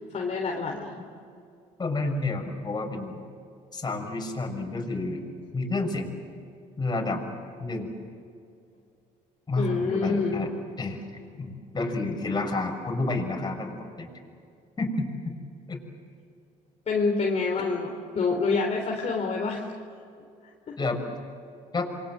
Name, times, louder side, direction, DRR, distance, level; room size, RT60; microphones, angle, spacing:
voice 1, 0.1-0.9 9.6-10.4 16.9-19.7 20.7-20.8, left 4 dB, 45° left, 0 dB, 3.9 m, -27 dB
voice 2, 1.8-3.2 3.7-5.2 5.5-6.1 6.8-7.2 7.6-7.9 9.5-10.5 10.8-11.0 11.3-14.1 14.8-15.3 15.7-15.8 20.8-21.0 21.7-21.9, left 2 dB, 25° left, 2 dB, 6.4 m, -30 dB
27.5 x 24.0 x 7.8 m, 2.4 s
supercardioid pair, 85°, 16 cm